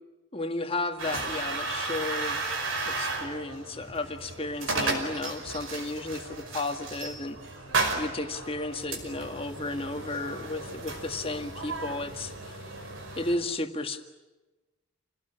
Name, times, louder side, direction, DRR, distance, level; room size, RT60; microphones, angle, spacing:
voice 1, 0.3-2.6 2.9-7.4 8.0-12.7 13.2-14.0, left 2 dB, 25° left, 6 dB, 1.8 m, -33 dB
sound 1, 1.0-13.4, right 3 dB, 70° right, 5.3 m, -34 dB
28.5 x 18.5 x 10.0 m, 1.1 s
head